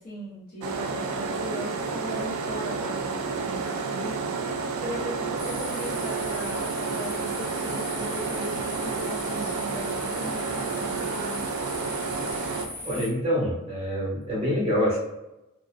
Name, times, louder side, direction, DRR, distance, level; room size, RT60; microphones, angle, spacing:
voice 1, 0.0-11.4, equal, 40° left, -4 dB, 0.7 m, -38 dB
sound 1, 0.6-12.7, right 4 dB, 70° right, 0.3 m, -30 dB
sound 2, 5.4-13.1, left 1 dB, 5° left, 0.3 m, -39 dB
voice 2, 12.8-15.0, equal, 30° right, -5 dB, 0.8 m, -26 dB
2.5 x 2.1 x 2.3 m, 0.96 s
head